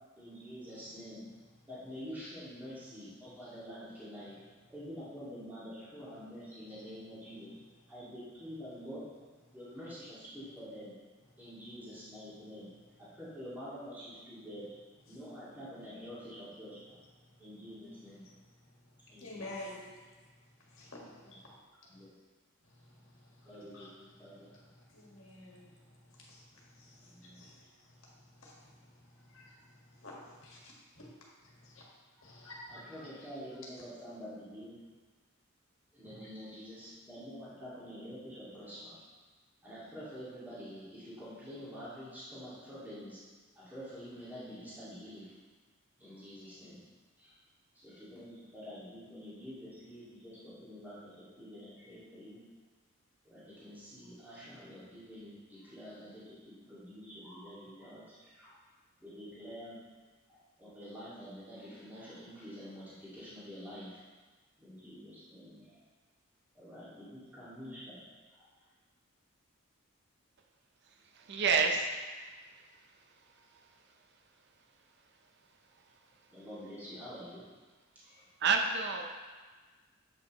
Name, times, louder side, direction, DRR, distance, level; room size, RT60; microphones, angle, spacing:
voice 1, 0.2-1.3 1.7-7.6 7.9-9.1 9.5-11.0 11.4-12.7 13.0-14.7 15.1-17.0 17.4-18.3 19.1-19.5 21.1-21.4 21.9-22.1 23.4-24.5 27.0-27.5 32.7-34.9 35.9-39.0 39.6-43.2 43.6-45.4 46.0-46.8 47.2-47.3 47.7-52.4 53.2-58.6 59.0-59.9 60.3-64.0 64.6-65.8 66.5-68.0 68.3-68.5 76.3-77.5 78.0-78.3, equal, 10° right, -11 dB, 2.0 m, -47 dB
voice 2, 19.2-19.8 20.6-21.5 21.9-22.0 22.6-23.9 24.2-24.3 24.5-24.6 24.9-31.1 31.4-31.8 32.2-32.8 33.2-33.3 36.0-36.5, left 1 dB, 65° left, -4 dB, 1.6 m, -51 dB
voice 3, 71.1-72.3 78.4-79.0, right 5 dB, 55° right, 4 dB, 0.6 m, -29 dB
7.8 x 5.4 x 3.0 m, 1.4 s
head